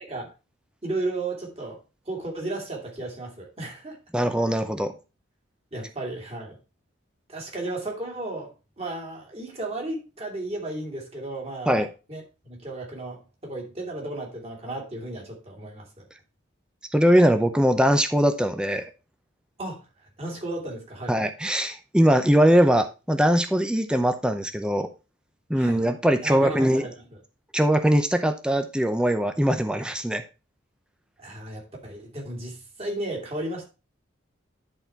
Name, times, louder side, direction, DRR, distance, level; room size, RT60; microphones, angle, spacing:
voice 1, 0.8-1.8 2.1-4.0 5.7-6.6 7.3-16.1 19.6-19.9 20.2-21.2 25.5-25.8 26.2-26.9 31.2-33.7, right 2 dB, 30° right, 2.4 m, -34 dB
voice 2, 4.1-4.9 11.7-11.9 16.9-18.9 21.1-24.9 25.5-26.9 27.5-30.2, equal, 5° right, 0.6 m, -21 dB
10.5 x 4.2 x 4.4 m
head